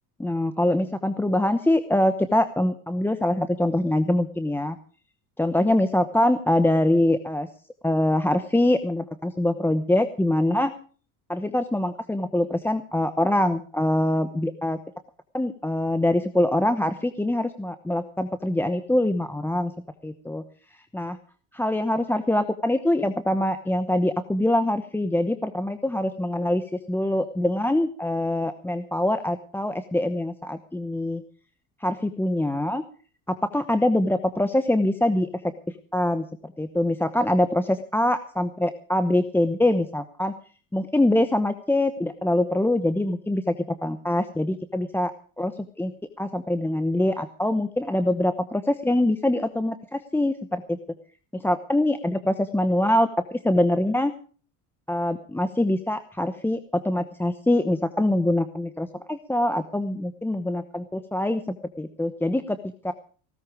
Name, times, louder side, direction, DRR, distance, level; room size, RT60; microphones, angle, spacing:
voice 1, 0.2-4.8 5.4-7.5 7.8-10.7 11.3-14.8 15.3-19.7 20.0-20.4 20.9-21.2 21.5-31.2 31.8-32.8 33.3-35.3 35.9-40.3 40.7-45.1 45.4-45.9 46.2-50.8 51.3-54.1 54.9-62.6 62.8-62.9, left 1 dB, 5° left, 10 dB, 1.0 m, -24 dB
17.0 x 14.0 x 4.9 m, 0.41 s
supercardioid pair, 115°, 36 cm